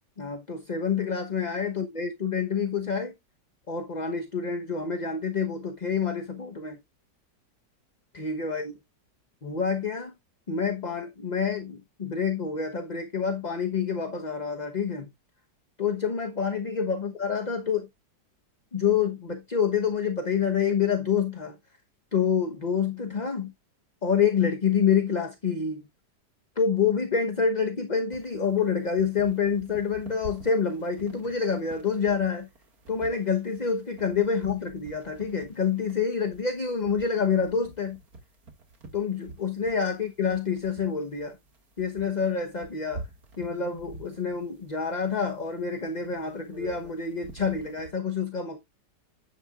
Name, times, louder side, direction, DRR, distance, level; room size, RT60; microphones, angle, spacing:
voice 1, 0.2-3.1 3.7-6.8 8.1-8.7 9.4-10.1 10.5-15.1 15.8-17.9 18.7-21.6 22.1-23.5 24.0-25.9 26.6-32.5 32.9-38.0 38.9-41.4 41.8-43.0 43.4-48.6, left 6 dB, 30° left, 1.0 m, -27 dB
sound 1, 28.1-47.9, right 3 dB, 55° right, 2.6 m, -48 dB
10.5 x 8.8 x 2.4 m
omnidirectional pair, 1.9 m